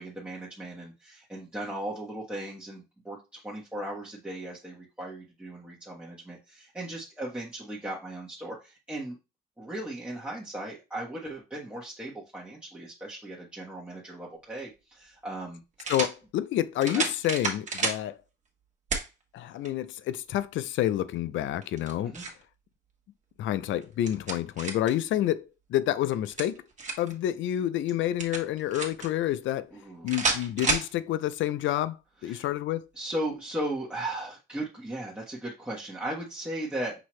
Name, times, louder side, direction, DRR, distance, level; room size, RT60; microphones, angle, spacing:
voice 1, 0.0-9.2 9.6-15.9 16.9-17.1 22.0-22.2 29.7-30.2 32.2-32.5 32.9-36.9, right 1 dB, 5° right, 1.2 m, -37 dB
sound 1, 14.5-14.6 15.8-16.2 16.8-18.0 18.9-19.1 19.7-19.8 21.6-22.4 23.8-25.0 26.1-27.1 28.2-29.1 30.1-30.9, right 4 dB, 35° right, 1.4 m, -30 dB
voice 2, 15.9-18.2 19.3-22.2 23.4-26.6 27.0-29.7 30.0-32.0 32.2-32.8, left 12 dB, 75° left, 0.4 m, -28 dB
6.0 x 2.7 x 3.1 m
cardioid pair, 90°, 20 cm